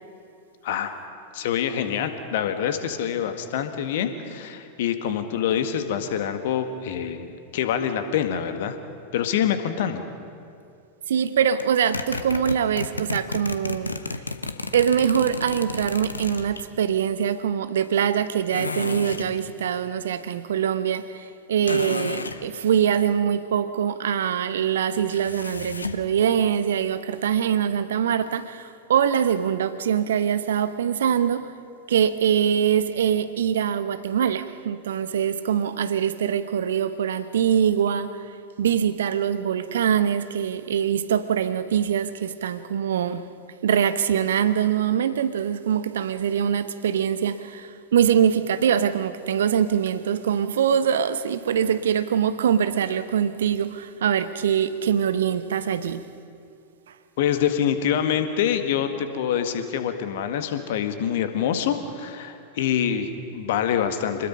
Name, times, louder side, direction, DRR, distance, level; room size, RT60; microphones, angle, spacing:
voice 1, 0.6-1.0 1.3-8.8 9.1-10.0 57.2-64.3, left 9 dB, 55° left, 8 dB, 1.7 m, -26 dB
voice 2, 11.1-14.2 14.7-31.5 31.9-38.1 38.6-43.2 43.6-56.1, right 8 dB, 60° right, 13 dB, 0.8 m, -23 dB
sound 1, 11.6-16.6 18.5-19.3 21.6-22.4 25.1-26.1, left 3 dB, 80° left, 1.0 m, -32 dB
27.0 x 21.0 x 5.5 m, 2.4 s
figure-of-eight pair, 90°, 0 cm